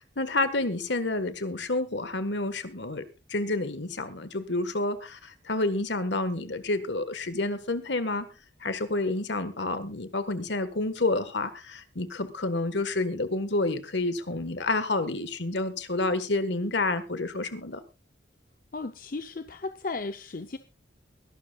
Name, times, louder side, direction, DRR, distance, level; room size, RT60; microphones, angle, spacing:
voice 1, 0.2-8.3 8.6-17.8, left 2 dB, 70° left, 11 dB, 1.5 m, -29 dB
voice 2, 18.7-20.6, left 3 dB, 45° left, 8 dB, 0.7 m, -35 dB
23.0 x 12.0 x 2.4 m, 0.28 s
head